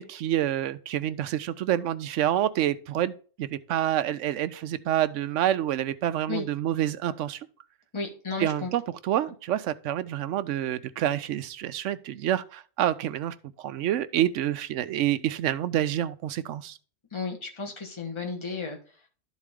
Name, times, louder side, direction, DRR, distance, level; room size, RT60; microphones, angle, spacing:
voice 1, 0.0-7.5 8.4-16.8, right 12 dB, 90° right, 0.9 m, -28 dB
voice 2, 7.9-8.7 17.1-18.8, left 4 dB, 25° left, 1.4 m, -33 dB
12.0 x 4.1 x 3.6 m
omnidirectional pair, 1.2 m